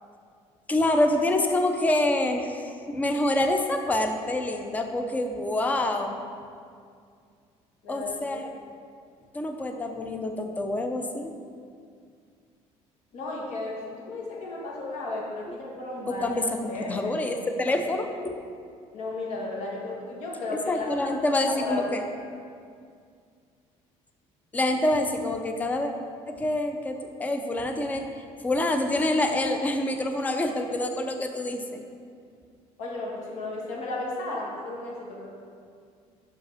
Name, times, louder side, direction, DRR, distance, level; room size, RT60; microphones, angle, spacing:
voice 1, 0.7-6.2 7.9-8.4 9.3-11.3 16.1-18.4 20.7-22.0 24.5-25.9 26.3-28.0 28.4-31.8, left 1 dB, 15° left, 5 dB, 0.5 m, -26 dB
voice 2, 7.8-8.4 13.1-16.3 16.7-17.1 18.9-21.1 21.5-21.9 32.8-35.3, left 2 dB, 70° left, -3 dB, 1.6 m, -34 dB
5.9 x 5.3 x 5.5 m, 2.2 s
cardioid pair, 160°, 12 cm